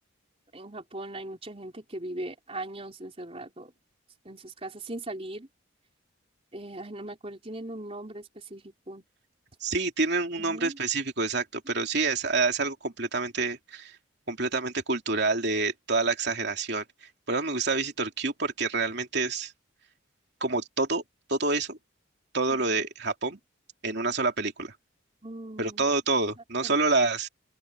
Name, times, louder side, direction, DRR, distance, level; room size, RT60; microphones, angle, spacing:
voice 1, 0.5-3.7 4.2-5.5 6.5-9.0 10.4-10.8 25.2-25.9 26.6-26.8, right 1 dB, 30° right, 4.0 m, -39 dB
voice 2, 9.6-13.9 14.3-16.8 17.3-19.5 20.4-21.0 21.3-21.8 22.3-23.4 23.8-24.7 25.6-27.3, right 3 dB, 55° right, 3.1 m, -27 dB
open air
head